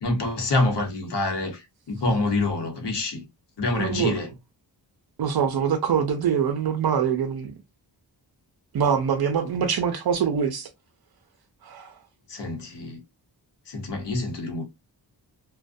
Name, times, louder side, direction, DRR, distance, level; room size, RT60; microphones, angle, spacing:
voice 1, 0.0-1.6 1.9-3.2 3.6-4.3 12.3-13.0 13.7-14.6, left 2 dB, 75° left, 0.9 m, -26 dB
voice 2, 3.8-4.2 5.2-7.6 8.7-10.7 11.6-11.9, right 7 dB, 60° right, 0.5 m, -24 dB
2.5 x 2.2 x 2.4 m
wide cardioid pair, 120°, 42 cm